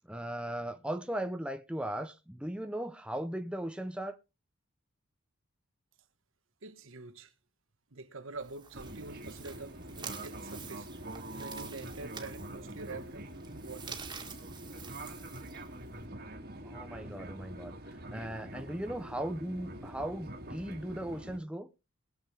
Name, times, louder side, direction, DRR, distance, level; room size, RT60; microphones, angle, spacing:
voice 1, 0.0-4.2 16.6-21.7, right 1 dB, 5° right, 0.6 m, -38 dB
voice 2, 6.6-7.3 7.9-10.9 11.3-14.0, right 3 dB, 75° right, 1.2 m, -46 dB
sound 1, 8.3-16.1, right 6 dB, 20° right, 1.8 m, -48 dB
Fixed-wing aircraft airplane, 8.7-21.4, right 1 dB, 50° right, 1.8 m, -45 dB
21.5 x 7.7 x 3.4 m
head